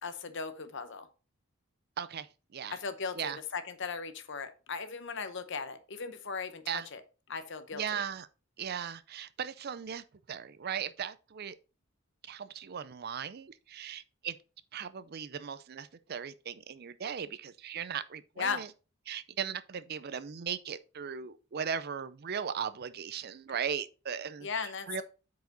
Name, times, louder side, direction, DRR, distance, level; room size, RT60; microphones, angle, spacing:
voice 1, 0.0-1.1 2.7-7.0 7.3-8.0 18.4-18.6 24.4-25.0, left 5 dB, 55° left, 0.8 m, -37 dB
voice 2, 2.0-2.8 3.2-3.4 6.7-6.9 7.7-8.3 8.6-11.6 12.2-14.4 14.7-18.7 19.1-25.0, right 7 dB, 45° right, 0.5 m, -38 dB
8.1 x 4.8 x 3.9 m
head